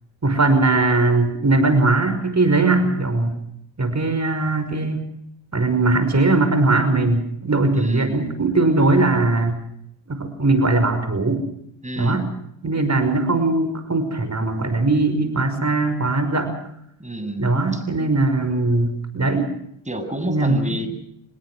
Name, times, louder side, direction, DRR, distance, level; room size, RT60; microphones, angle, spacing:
voice 1, 0.2-3.4 3.8-5.1 5.5-9.6 10.1-11.4 12.0-12.3 12.6-16.5 17.4-19.5 20.3-20.8, right 2 dB, 35° right, 10 dB, 5.7 m, -20 dB
voice 2, 7.7-8.2 11.3-11.4 11.8-12.3 17.0-17.8 19.9-20.9, right 1 dB, 15° right, 9 dB, 7.4 m, -30 dB
25.0 x 22.0 x 6.3 m, 0.73 s
supercardioid pair, 55°, 46 cm